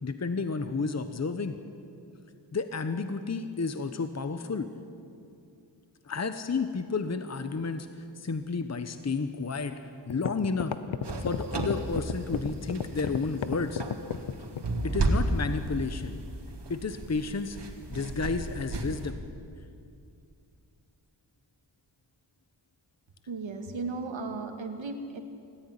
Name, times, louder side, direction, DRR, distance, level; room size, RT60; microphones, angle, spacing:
voice 1, 0.0-1.6 2.5-4.7 6.0-7.9 8.2-9.7 10.1-10.7 11.2-13.8 14.8-16.2 16.7-17.6 17.9-19.2, left 4 dB, 35° left, 9 dB, 1.1 m, -31 dB
sound 1, 9.6-9.7 10.1-14.8, left 8 dB, 80° left, 1.0 m, -32 dB
sound 2, 11.0-19.1, right 2 dB, 65° right, 2.8 m, -33 dB
voice 2, 23.3-25.2, right 3 dB, 85° right, 5 dB, 2.3 m, -35 dB
26.5 x 14.5 x 10.0 m, 2.5 s
wide cardioid pair, 100°, 45 cm